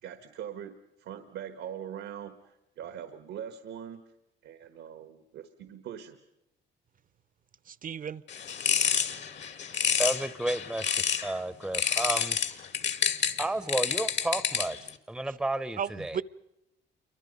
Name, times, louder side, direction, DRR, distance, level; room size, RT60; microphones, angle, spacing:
voice 1, 0.0-4.0 4.4-6.2, right 9 dB, 90° right, 1.5 m, -42 dB
voice 2, 7.7-8.2 15.8-16.2, right 8 dB, 45° right, 0.7 m, -34 dB
sound 1, 8.3-11.3 11.7-14.9, left 7 dB, 65° left, 2.0 m, -28 dB
voice 3, 10.0-12.4 13.4-16.2, right 2 dB, 5° right, 0.7 m, -32 dB
28.5 x 24.5 x 5.3 m
cardioid pair, 90°, 20 cm